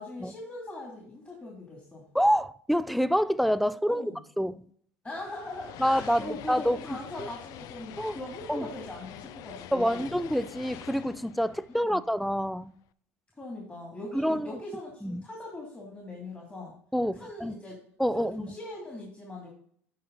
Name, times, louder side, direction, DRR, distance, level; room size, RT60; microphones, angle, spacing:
voice 1, 0.0-2.0 3.9-4.2 5.0-10.1 11.7-12.0 13.4-16.7 17.2-17.8 18.1-19.5, left 2 dB, 20° left, 2.6 m, -41 dB
voice 2, 2.1-4.0 4.4-4.6 5.8-6.8 7.2-7.3 8.0-8.2 8.5-8.7 9.7-12.7 14.1-14.6 15.0-15.2 16.9-17.5 18.0-18.5, equal, ahead, 0.4 m, -27 dB
sound 1, 5.1-12.6, left 12 dB, 60° left, 0.5 m, -46 dB
12.0 x 4.4 x 3.9 m
hypercardioid pair, 85°, 7 cm